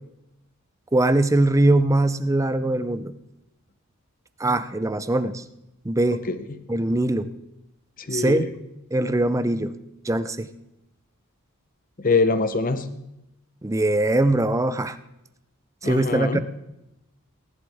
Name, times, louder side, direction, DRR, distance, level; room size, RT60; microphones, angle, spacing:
voice 1, 0.9-3.2 4.4-5.4 5.8-6.3 6.7-7.3 8.1-8.5 8.9-9.8 10.0-10.5 13.6-15.0 15.8-16.4, right 2 dB, 15° right, 13 dB, 0.5 m, -21 dB
voice 2, 6.2-6.6 8.0-8.5 12.0-12.9 15.8-16.4, left 3 dB, 40° left, 11 dB, 0.9 m, -23 dB
18.5 x 11.0 x 3.5 m, 0.88 s
head